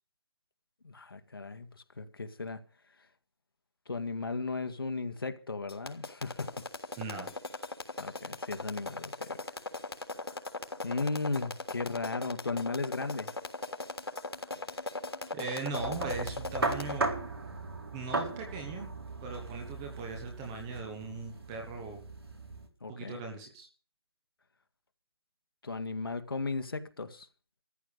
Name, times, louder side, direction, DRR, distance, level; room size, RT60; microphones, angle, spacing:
voice 1, 0.8-2.6 3.9-6.6 8.0-9.3 10.8-13.3 22.8-23.2 25.6-27.3, left 3 dB, 65° left, 2.0 m, -36 dB
sound 1, 5.7-17.0, left 3 dB, 85° left, 3.4 m, -38 dB
voice 2, 7.0-7.3 15.3-17.1 17.9-18.9 19.2-22.0 22.9-23.7, right 4 dB, 10° right, 1.1 m, -39 dB
sound 2, 15.7-22.7, right 3 dB, 75° right, 4.2 m, -37 dB
14.0 x 11.5 x 6.7 m
hypercardioid pair, 175°, 13 cm